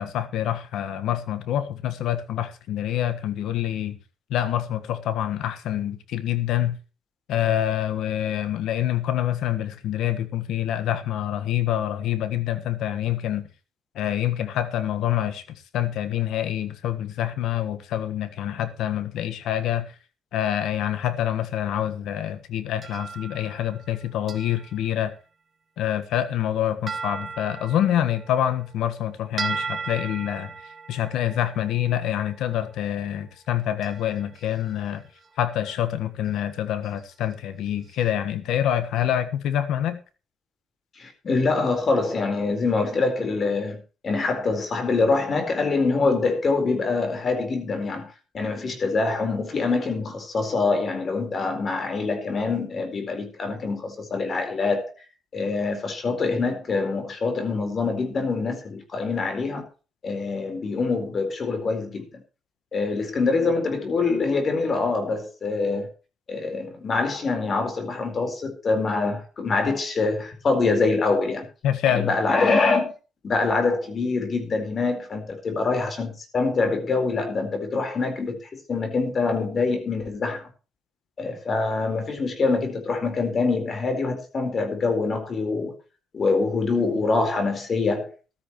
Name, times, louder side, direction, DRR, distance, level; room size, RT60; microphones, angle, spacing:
voice 1, 0.0-4.0 4.3-6.8 7.3-13.5 13.9-20.0 20.3-25.1 25.8-30.5 30.9-35.0 35.4-40.0 71.6-72.1, left 11 dB, 85° left, 1.4 m, -26 dB
sound 1, 22.8-23.9 24.3-24.9 26.9-29.0 29.4-32.5 33.8-34.9 35.2-35.8 36.2-36.4 36.8-37.0 37.9-38.0, right 5 dB, 40° right, 1.9 m, -37 dB
voice 2, 41.0-43.8 44.0-48.1 48.3-54.9 55.3-59.7 60.0-62.2 62.7-65.9 66.3-71.5 71.9-72.9 73.2-80.5 81.2-85.7 86.1-88.1, left 3 dB, 45° left, 4.2 m, -25 dB
14.5 x 13.0 x 3.1 m
cardioid pair, 90°, 0 cm